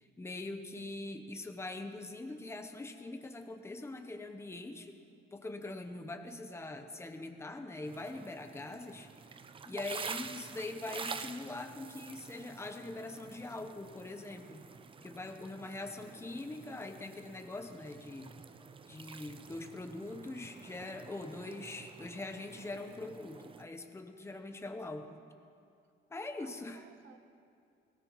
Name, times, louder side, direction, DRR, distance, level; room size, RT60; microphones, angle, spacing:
voice 1, 0.0-5.0 5.3-9.1 9.7-14.6 15.0-18.3 18.9-25.2 26.1-26.8, left 2 dB, 10° left, 6 dB, 0.8 m, -43 dB
voice 2, 6.0-6.3 24.3-24.6 26.4-27.2, right 8 dB, 65° right, 8 dB, 1.0 m, -60 dB
sound 1, 7.8-23.6, right 5 dB, 25° right, 0.5 m, -48 dB
20.0 x 18.0 x 3.1 m, 2.5 s
cardioid pair, 140°, 21 cm